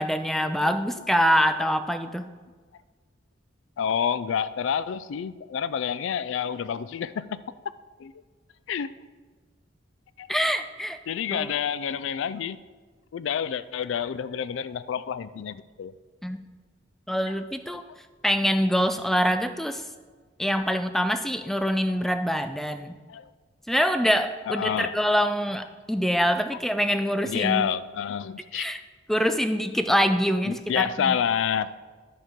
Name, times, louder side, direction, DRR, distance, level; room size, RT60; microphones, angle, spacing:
voice 1, 0.0-2.3 10.3-11.0 11.3-11.5 16.2-16.4 17.1-17.8 18.2-19.8 20.4-22.9 23.7-27.7 28.5-28.8 29.1-31.2, equal, ahead, 9 dB, 0.3 m, -25 dB
voice 2, 3.8-7.4 8.0-8.1 8.7-8.9 10.2-10.3 11.1-12.6 13.1-15.9 20.7-20.8 23.1-23.3 24.5-24.9 27.2-28.7 30.4-31.8, left 8 dB, 80° left, 16 dB, 0.3 m, -28 dB
10.0 x 4.6 x 5.0 m, 1.4 s
head